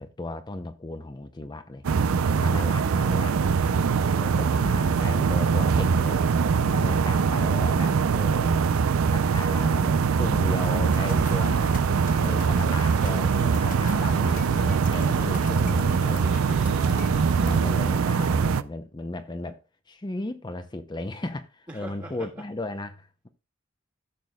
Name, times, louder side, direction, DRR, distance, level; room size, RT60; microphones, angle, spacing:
voice 1, 0.0-1.9 2.3-3.4 4.1-6.2 6.7-8.7 9.1-11.8 12.2-16.4 17.2-19.6 19.9-23.3, left 2 dB, 20° left, 0.5 m, -35 dB
sound 1, 1.8-18.6, right 5 dB, 85° right, 0.5 m, -23 dB
voice 2, 3.6-4.2 16.2-17.6 21.7-22.3, right 1 dB, 20° right, 1.5 m, -44 dB
sound 2, 10.6-17.8, left 2 dB, 40° left, 0.9 m, -43 dB
sound 3, 10.9-17.8, right 3 dB, 35° right, 2.1 m, -43 dB
14.5 x 6.7 x 2.2 m
head